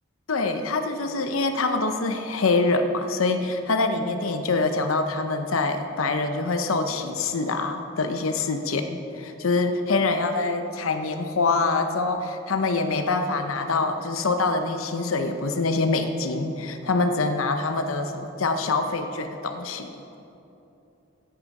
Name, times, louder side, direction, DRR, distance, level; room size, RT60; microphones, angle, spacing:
voice 1, 0.3-20.0, left 3 dB, 80° left, 7 dB, 0.8 m, -25 dB
16.0 x 10.5 x 4.8 m, 2.9 s
head